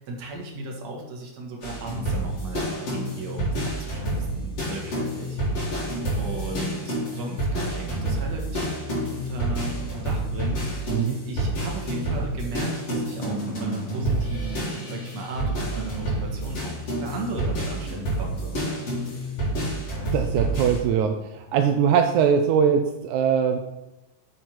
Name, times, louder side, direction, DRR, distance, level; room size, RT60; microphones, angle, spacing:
voice 1, 0.0-5.9 6.2-18.6, right 2 dB, 65° right, 0 dB, 2.9 m, -36 dB
sound 1, 1.6-20.8, right 1 dB, 55° left, 4.3 m, -28 dB
voice 2, 20.1-23.6, right 7 dB, 90° right, 5 dB, 2.1 m, -21 dB
8.1 x 7.9 x 4.6 m, 0.95 s
omnidirectional pair, 3.3 m